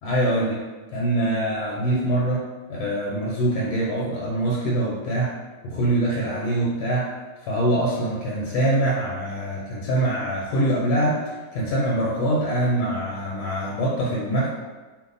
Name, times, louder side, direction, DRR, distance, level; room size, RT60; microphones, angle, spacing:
voice 1, 0.0-0.6 0.9-5.3 5.6-7.1 7.4-14.5, right 1 dB, 80° left, -4 dB, 1.1 m, -24 dB
2.6 x 2.4 x 3.8 m, 1.3 s
omnidirectional pair, 1.8 m